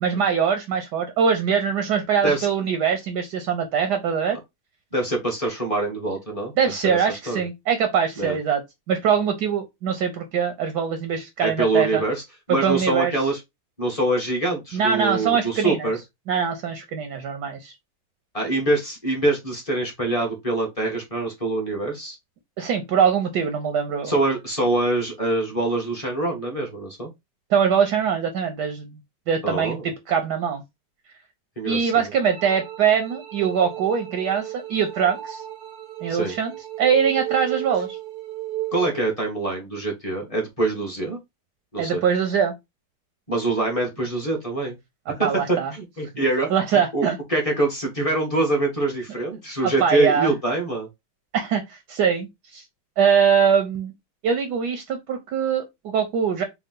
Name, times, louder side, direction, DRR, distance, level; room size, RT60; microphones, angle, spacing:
voice 1, 0.0-4.4 6.6-8.6 8.9-12.0 12.5-13.1 14.7-15.9 16.3-17.7 22.6-24.1 27.5-29.0 29.3-30.6 31.7-35.4 36.0-38.0 41.8-42.5 45.1-45.7 46.5-47.2 49.6-50.3 51.3-52.6 53.0-53.9 54.2-56.4, right 7 dB, 65° right, 1.1 m, -22 dB
voice 2, 4.9-6.5 6.8-7.0 7.3-7.4 8.2-8.4 11.4-12.2 12.5-13.4 13.8-16.0 18.3-22.2 24.0-27.1 29.4-29.9 31.6-32.0 36.1-36.3 38.7-41.2 41.7-42.0 43.3-44.8 45.1-45.3 45.7-50.9, right 2 dB, 20° left, 1.0 m, -24 dB
sound 1, 32.2-39.2, right 14 dB, 90° right, 1.7 m, -34 dB
4.7 x 2.3 x 3.8 m
omnidirectional pair, 2.3 m